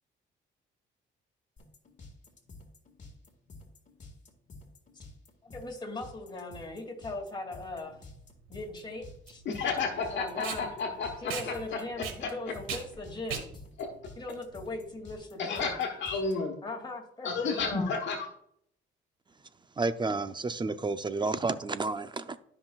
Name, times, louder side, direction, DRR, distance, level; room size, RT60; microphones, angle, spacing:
sound 1, 1.6-16.3, left 3 dB, 40° left, 1.9 m, -51 dB
voice 1, 5.4-8.0 8.5-9.4 10.1-10.7 11.2-13.6 14.2-15.7 16.6-17.9, left 2 dB, 25° left, 1 dB, 2.6 m, -39 dB
Packing tape duct tape, 7.7-15.1, right 7 dB, 90° right, 1.5 m, -41 dB
voice 2, 9.4-11.8 12.2-12.3 13.8-13.9 15.4-16.5 17.2-18.3, left 4 dB, 65° left, 3 dB, 1.3 m, -32 dB
voice 3, 19.8-22.4, right 3 dB, 25° right, 11 dB, 0.6 m, -31 dB
12.5 x 5.7 x 2.4 m, 0.69 s
cardioid pair, 90°, 20 cm